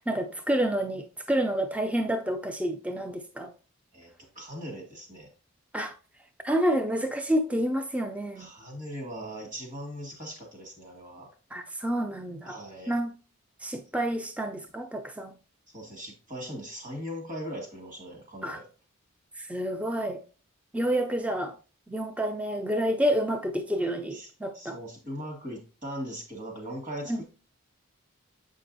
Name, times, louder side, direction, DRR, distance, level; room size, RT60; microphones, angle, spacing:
voice 1, 0.1-3.5 5.7-5.9 6.4-8.5 11.5-12.6 12.9-13.2 13.6-15.3 18.4-18.6 19.4-20.2 20.7-21.5 21.9-24.8 27.1-27.2, right 1 dB, 5° right, 0.4 m, -29 dB
voice 2, 3.9-5.3 8.4-11.3 12.4-13.0 15.7-18.7 24.1-27.3, equal, 35° right, 2.0 m, -40 dB
7.6 x 5.1 x 2.6 m
head